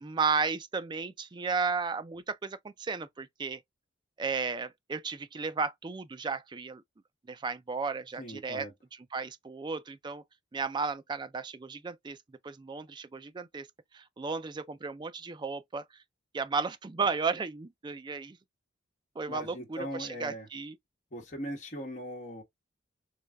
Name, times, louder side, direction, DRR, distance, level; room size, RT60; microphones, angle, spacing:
voice 1, 0.0-3.6 4.2-6.8 7.3-8.7 9.1-10.2 10.5-12.2 12.4-13.7 13.9-15.8 16.3-18.4 19.2-20.8, right 4 dB, 25° right, 0.3 m, -34 dB
voice 2, 8.2-8.7 19.3-20.5 21.1-22.4, equal, 40° left, 1.2 m, -39 dB
3.2 x 3.2 x 2.3 m
head